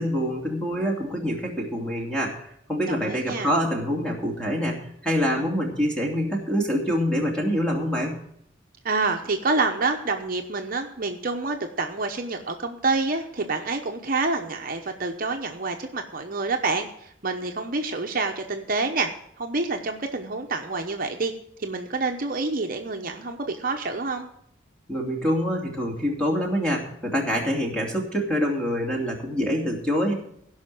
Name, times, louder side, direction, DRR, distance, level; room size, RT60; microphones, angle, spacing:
voice 1, 0.0-8.2 24.9-30.1, equal, 5° left, -1 dB, 2.7 m, -26 dB
voice 2, 2.9-3.5 8.8-19.1 19.4-21.3 21.6-24.3, right 3 dB, 45° right, 4 dB, 0.9 m, -27 dB
16.5 x 5.7 x 7.7 m, 0.72 s
head